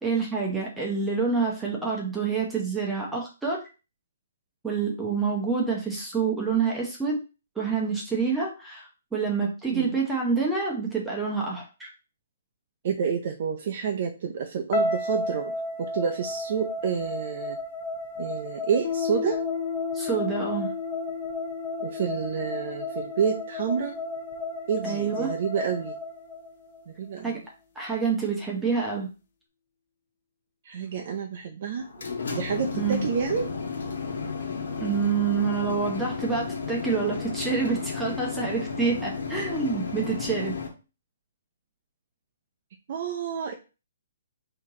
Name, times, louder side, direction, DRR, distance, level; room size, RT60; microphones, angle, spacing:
voice 1, 0.0-3.6 4.6-7.2 7.6-11.9 19.9-20.7 24.8-25.3 27.2-27.4 27.8-29.1 32.7-33.0 34.8-40.6, right 5 dB, 5° right, -3 dB, 0.8 m, -27 dB
voice 2, 12.8-17.6 18.2-19.4 21.8-24.0 24.7-26.0 26.9-27.4 30.6-33.5 42.9-43.5, right 7 dB, 45° right, 3 dB, 0.5 m, -29 dB
sound 1, 14.7-26.9, left 2 dB, 35° left, 0.8 m, -33 dB
Piano, 18.8-26.1, left 7 dB, 50° left, 0.4 m, -35 dB
sound 2, 31.8-40.7, left 5 dB, 80° left, 1.3 m, -33 dB
4.4 x 2.9 x 3.6 m, 0.31 s
hypercardioid pair, 160°, 0 cm